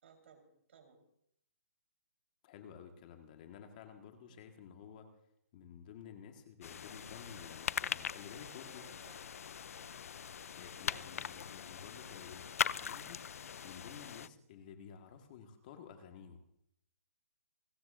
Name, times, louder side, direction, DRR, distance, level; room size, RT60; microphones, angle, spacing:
voice 1, 0.0-1.0 4.3-4.5 8.8-9.3 9.7-10.1 10.9-11.2, right 6 dB, 50° right, 4 dB, 4.0 m, -62 dB
voice 2, 2.4-5.1 5.5-8.9 10.5-13.2 13.6-16.4, left 7 dB, 30° left, 5 dB, 1.6 m, -52 dB
sound 1, 6.6-14.3, left 7 dB, 65° left, 0.5 m, -41 dB
28.5 x 14.0 x 2.6 m, 0.72 s
hypercardioid pair, 160°, 9 cm